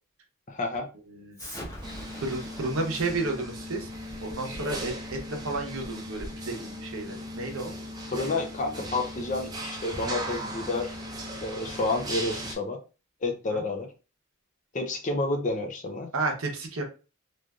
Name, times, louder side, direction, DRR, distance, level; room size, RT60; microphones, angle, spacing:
voice 1, 0.5-0.9 8.1-11.0 11.4-12.8 13.2-13.9 14.7-16.1, left 2 dB, 35° left, 5 dB, 0.4 m, -30 dB
Explosion, 1.3-6.5, equal, 15° left, 0.9 m, -43 dB
sound 1, 1.8-12.6, equal, 20° right, 0.5 m, -38 dB
voice 2, 2.2-3.9 4.2-7.7 13.5-13.6 16.1-16.8, right 2 dB, 70° right, 3 dB, 0.8 m, -32 dB
3.3 x 2.5 x 2.3 m, 0.33 s
head